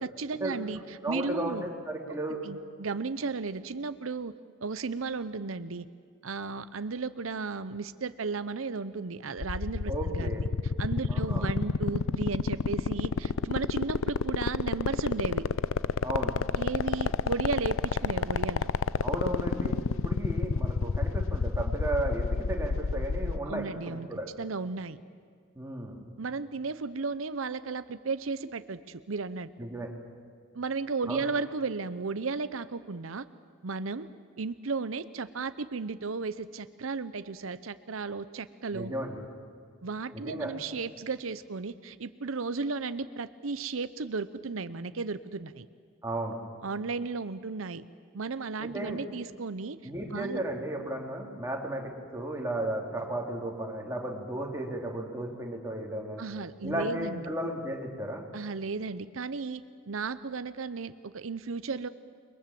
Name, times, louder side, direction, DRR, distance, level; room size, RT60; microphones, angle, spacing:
voice 1, 0.0-1.7 2.1-2.2 2.4-4.3 4.6-5.9 6.2-10.4 10.8-15.4 16.6-18.7 23.5-24.1 24.4-25.0 26.2-29.5 30.5-33.2 33.6-34.1 34.4-38.9 39.8-45.7 46.6-47.8 48.1-49.8 50.1-50.4 56.2-57.3 58.3-61.9, right 4 dB, 85° right, 13 dB, 0.8 m, -34 dB
voice 2, 1.0-2.4 9.9-10.4 11.1-11.5 16.0-16.4 19.0-19.8 20.0-24.3 25.6-26.0 29.6-29.9 31.1-31.2 38.7-39.2 40.1-40.5 46.0-46.4 48.6-49.0 49.8-56.2 56.6-58.2, right 1 dB, 15° right, 0 dB, 3.7 m, -34 dB
sound 1, 9.4-23.4, left 4 dB, 90° left, 0.6 m, -28 dB
29.0 x 22.5 x 7.7 m, 2.1 s
head